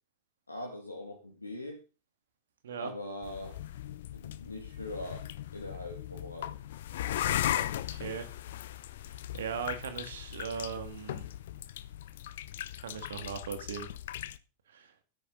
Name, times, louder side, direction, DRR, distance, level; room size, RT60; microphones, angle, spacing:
voice 1, 0.5-1.8 2.8-3.6 4.1-5.3 5.5-6.6, left 1 dB, 80° left, 2 dB, 2.2 m, -41 dB
sound 1, 3.2-14.4, left 12 dB, 55° left, 0.7 m, -38 dB
voice 2, 7.9-8.3 9.3-11.2 12.8-13.9 14.7-14.9, right 7 dB, 65° right, 9 dB, 2.1 m, -38 dB
13.0 x 10.5 x 3.9 m, 0.32 s
figure-of-eight pair, 90°, 0 cm